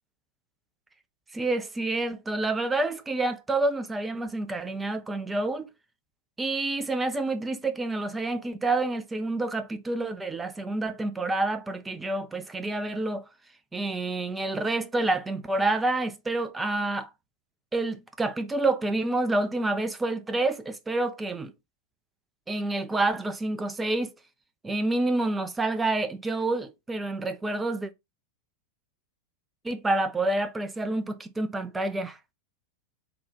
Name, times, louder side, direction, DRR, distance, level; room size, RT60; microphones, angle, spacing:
voice 1, 1.3-5.7 6.4-13.2 13.7-17.1 17.7-21.5 22.5-24.1 24.6-27.9 29.6-32.2, right 2 dB, 10° right, 0.6 m, -28 dB
3.8 x 2.4 x 3.8 m
figure-of-eight pair, 90°, 0 cm